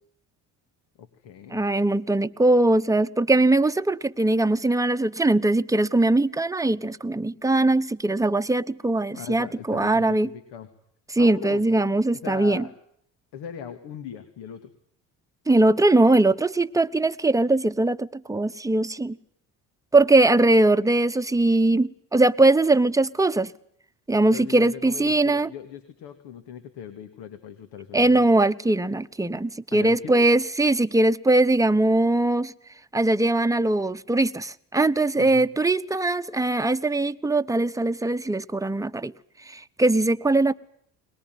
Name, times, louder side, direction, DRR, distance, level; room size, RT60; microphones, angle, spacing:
voice 1, 1.0-1.7 9.1-10.7 11.2-12.7 13.3-14.7 24.3-28.3 29.7-30.3 35.2-35.5, left 8 dB, 75° left, 2.3 m, -39 dB
voice 2, 1.5-10.3 11.1-12.6 15.5-19.2 19.9-23.5 24.1-25.5 27.9-32.5 32.9-39.1 39.5-40.5, right 2 dB, 10° right, 0.9 m, -21 dB
22.5 x 20.0 x 9.3 m
supercardioid pair, 70°, 42 cm